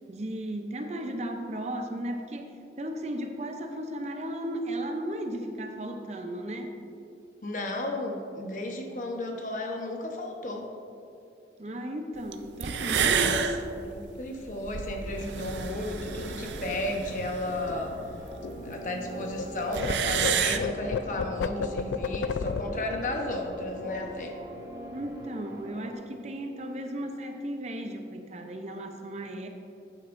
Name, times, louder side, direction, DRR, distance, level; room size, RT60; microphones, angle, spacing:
voice 1, 0.1-6.8 11.6-13.4 24.9-29.5, right 1 dB, 40° right, 5 dB, 0.6 m, -35 dB
voice 2, 7.4-10.7 13.2-13.4 13.8-17.9 18.6-24.4, left 1 dB, 45° left, 2 dB, 1.0 m, -33 dB
sound 1, 12.3-12.4 12.6-18.6 18.9-19.0 19.2-19.3 19.5-20.6, right 7 dB, 85° right, 0.5 m, -30 dB
sound 2, 15.0-25.9, equal, 20° right, 1.3 m, -43 dB
sound 3, 16.1-19.5 19.7-24.7 25.0-25.3 25.5-26.1, left 5 dB, 90° left, 0.3 m, -35 dB
11.5 x 8.9 x 2.6 m, 2.6 s
head